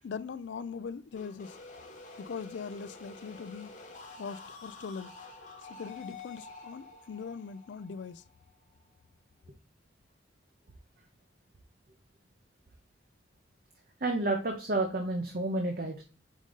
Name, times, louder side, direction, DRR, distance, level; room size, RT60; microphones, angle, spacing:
voice 1, 0.0-1.6 2.2-3.7 4.2-5.1 5.6-8.2, left 5 dB, 75° left, 0.4 m, -41 dB
sound 1, 1.1-8.9, left 3 dB, 40° left, 1.1 m, -49 dB
voice 2, 14.0-16.0, right 2 dB, 50° right, 0.8 m, -30 dB
5.1 x 3.8 x 5.2 m
head